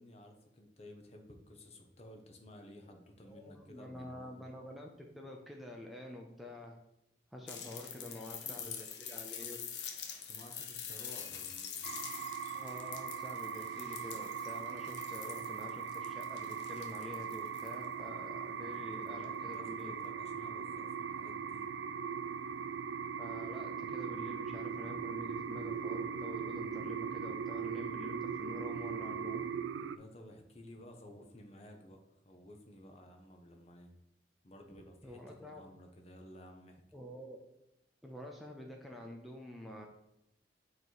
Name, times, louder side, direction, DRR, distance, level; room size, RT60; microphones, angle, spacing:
voice 1, 0.0-4.4 7.9-8.8 10.2-11.8 18.6-21.7 29.9-32.0 32.2-33.9 34.4-36.8, left 1 dB, 35° left, 4 dB, 0.8 m, -54 dB
voice 2, 3.2-6.7 7.3-9.6 12.5-19.9 23.2-29.4 35.0-35.6 36.9-37.4 38.0-39.9, left 1 dB, ahead, 0 dB, 0.5 m, -48 dB
sound 1, 7.5-17.8 19.2-19.3, left 8 dB, 70° left, 0.7 m, -45 dB
sound 2, 11.8-30.0, right 6 dB, 85° right, 0.3 m, -40 dB
7.9 x 3.2 x 4.6 m, 0.86 s
head